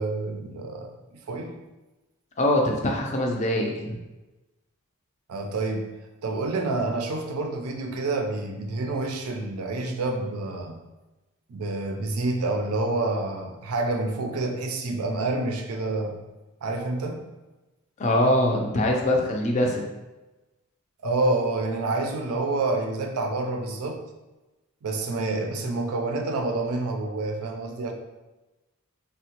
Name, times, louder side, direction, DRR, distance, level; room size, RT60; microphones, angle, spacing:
voice 1, 0.0-1.6 5.3-5.9 6.2-10.8 11.5-16.2 16.6-17.2 21.0-24.0 24.8-27.9, right 2 dB, 75° right, 4 dB, 0.4 m, -28 dB
voice 2, 2.4-4.0 18.0-19.9, left 1 dB, 30° left, 1 dB, 0.4 m, -23 dB
3.4 x 2.1 x 2.8 m, 1.1 s
head